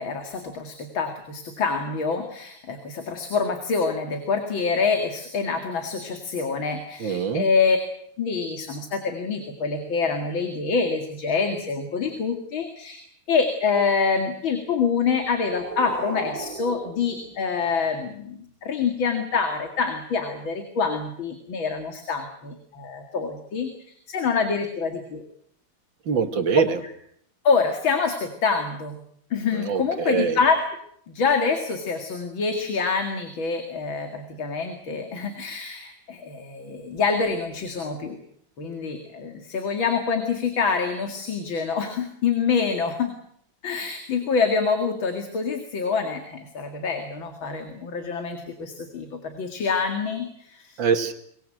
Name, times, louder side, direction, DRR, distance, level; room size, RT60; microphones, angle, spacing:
voice 1, 0.0-7.8 8.2-13.0 13.3-25.2 27.4-29.0 29.3-30.6 31.1-38.2 38.6-43.1 43.6-50.8, left 5 dB, 65° left, 5 dB, 2.9 m, -26 dB
voice 2, 7.0-7.5 26.1-26.8 29.5-30.4 50.8-51.1, right 6 dB, 60° right, 8 dB, 2.5 m, -23 dB
sound 1, 15.0-18.0, right 2 dB, 20° right, 3.7 m, -36 dB
24.5 x 20.5 x 7.8 m, 0.68 s
omnidirectional pair, 2.3 m